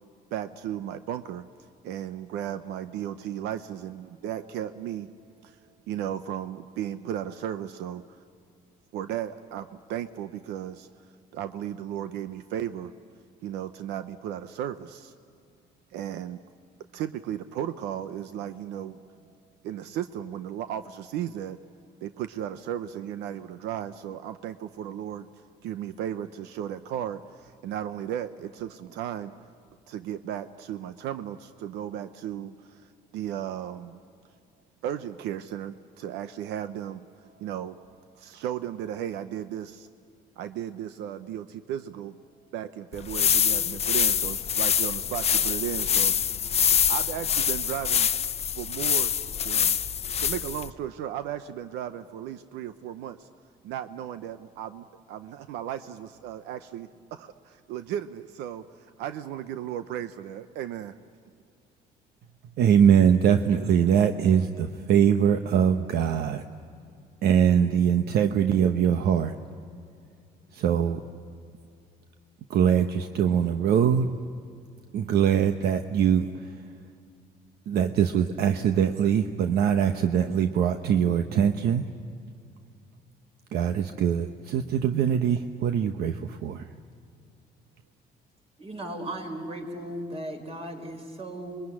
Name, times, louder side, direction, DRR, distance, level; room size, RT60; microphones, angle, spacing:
voice 1, 0.3-1.5 1.8-5.1 5.4-5.6 5.9-8.2 8.9-10.9 11.3-12.9 13.4-15.1 15.9-16.4 16.9-19.0 19.6-21.6 22.0-25.3 25.6-29.3 29.9-32.8 33.1-34.0 34.8-37.1 37.4-37.8 38.2-39.9 40.4-42.2 42.5-46.3 46.9-48.1 48.5-49.1 49.4-49.8 50.2-53.3 53.6-60.9, right 10 dB, 90° right, 11 dB, 0.8 m, -35 dB
sound 1, 42.9-50.7, left 8 dB, 40° left, 0.8 m, -25 dB
voice 2, 62.6-66.4 67.2-69.3 70.5-71.0 72.5-74.1 74.9-76.6 77.7-81.8 83.5-86.7, right 8 dB, 70° right, 7 dB, 1.0 m, -22 dB
voice 3, 88.6-91.6, right 1 dB, 35° right, 3 dB, 5.0 m, -36 dB
27.0 x 22.0 x 9.8 m, 2.4 s
cardioid pair, 110°, 17 cm